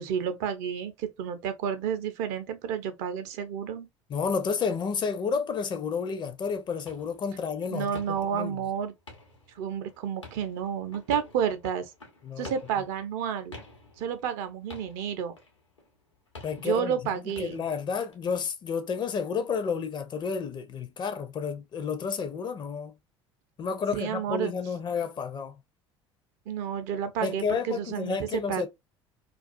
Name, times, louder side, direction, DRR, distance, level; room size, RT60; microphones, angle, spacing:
voice 1, 0.0-3.9 7.7-8.9 9.6-11.9 12.4-13.6 14.0-15.4 16.6-17.6 23.9-24.5 26.5-28.7, right 8 dB, 55° right, 0.5 m, -31 dB
voice 2, 4.1-8.6 12.2-12.5 16.4-22.9 23.6-25.5 27.2-28.7, left 5 dB, 30° left, 0.5 m, -31 dB
sound 1, 6.5-18.1, left 2 dB, 85° left, 0.8 m, -50 dB
2.4 x 2.3 x 2.5 m
figure-of-eight pair, 60°, 15 cm